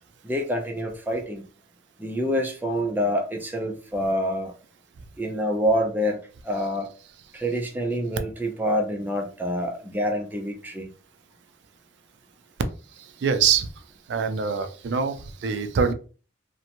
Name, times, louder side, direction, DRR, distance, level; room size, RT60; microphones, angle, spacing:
voice 1, 0.2-1.4 2.0-4.5 5.2-6.2 6.4-6.9 7.3-10.9, equal, 10° right, 2 dB, 0.5 m, -26 dB
voice 2, 13.2-13.7 14.1-15.9, right 6 dB, 70° right, 9 dB, 0.3 m, -24 dB
2.9 x 2.1 x 2.5 m, 0.37 s
head